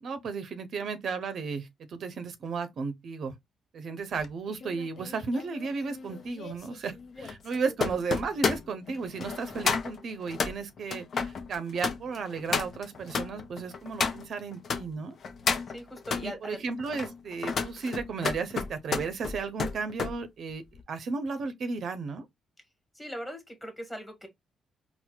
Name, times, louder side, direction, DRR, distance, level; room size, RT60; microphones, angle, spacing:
voice 1, 0.0-3.3 3.7-15.2 15.5-15.6 16.1-20.6 20.9-22.2, right 4 dB, 60° right, 0.6 m, -34 dB
sound 1, 4.2-14.8 15.2-16.3 16.8-20.2 20.5-20.8, left 5 dB, 50° left, 0.5 m, -32 dB
voice 2, 15.7-16.6 22.9-24.3, equal, 5° left, 1.4 m, -40 dB
4.2 x 2.1 x 2.2 m
cardioid pair, 90°, 0 cm